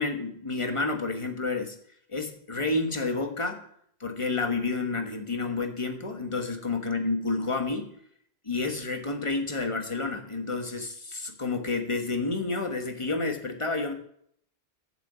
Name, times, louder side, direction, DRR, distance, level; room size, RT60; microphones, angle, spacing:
voice 1, 0.0-1.8 2.1-3.6 4.0-7.9 8.4-13.9, left 3 dB, 30° left, 5 dB, 1.4 m, -30 dB
11.5 x 6.2 x 8.2 m, 0.67 s
omnidirectional pair, 1.1 m